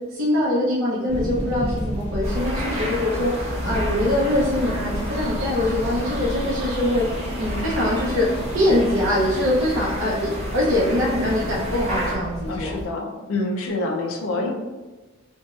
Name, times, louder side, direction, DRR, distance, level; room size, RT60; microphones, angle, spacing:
voice 1, 0.1-7.1 7.4-12.7, left 1 dB, 70° right, -6 dB, 0.6 m, -23 dB
sound 1, 1.1-12.8, equal, 30° left, 0.7 m, -31 dB
sound 2, 2.2-12.1, right 1 dB, 30° right, 0.7 m, -32 dB
voice 2, 12.5-14.5, left 2 dB, 70° left, 1 dB, 0.5 m, -27 dB
3.0 x 2.6 x 2.3 m, 1.2 s
head